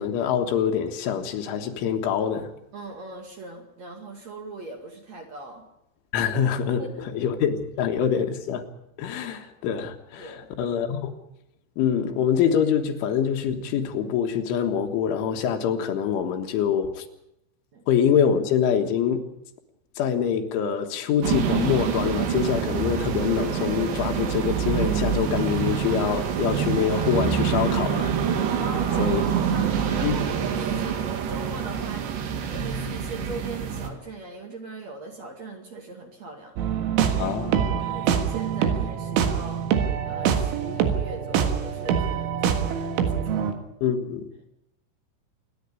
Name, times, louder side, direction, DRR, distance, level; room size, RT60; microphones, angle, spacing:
voice 1, 0.0-2.5 6.1-6.8 7.1-8.6 9.0-11.1 11.8-17.1 17.9-19.3 20.0-28.2 29.0-29.2 30.0-30.2 37.2-37.8 43.8-44.3, left 8 dB, 85° left, 5 dB, 4.0 m, -25 dB
voice 2, 2.7-5.7 6.5-7.2 10.2-10.5 17.7-17.9 28.6-29.2 29.5-36.5 37.2-37.4 37.9-43.5, right 2 dB, 45° right, 3 dB, 2.7 m, -40 dB
sound 1, 21.2-33.9, right 8 dB, 70° right, 4.0 m, -26 dB
sound 2, 36.6-43.5, right 8 dB, 85° right, 4.1 m, -25 dB
26.5 x 11.0 x 9.7 m, 0.83 s
omnidirectional pair, 5.4 m